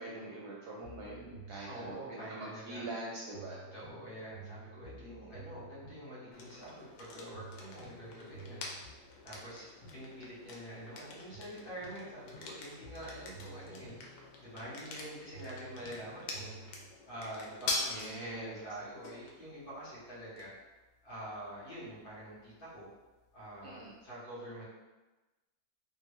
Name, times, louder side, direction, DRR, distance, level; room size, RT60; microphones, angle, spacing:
voice 1, 0.0-3.6 17.9-18.5 23.6-23.9, right 2 dB, 70° right, -4 dB, 1.0 m, -43 dB
sound 1, 0.8-3.0 3.3-7.0 7.3-11.0 11.3-15.0 15.3-16.9, right 3 dB, 20° left, 0.8 m, -53 dB
voice 2, 1.6-2.9 3.7-8.6 9.2-9.7 9.9-16.5 17.0-20.5 21.0-22.9 23.3-24.6, right 1 dB, 55° left, -9 dB, 1.6 m, -46 dB
sound 2, 6.3-24.1, left 3 dB, 85° left, 1.3 m, -45 dB
3.6 x 2.3 x 3.1 m, 1.1 s
omnidirectional pair, 2.0 m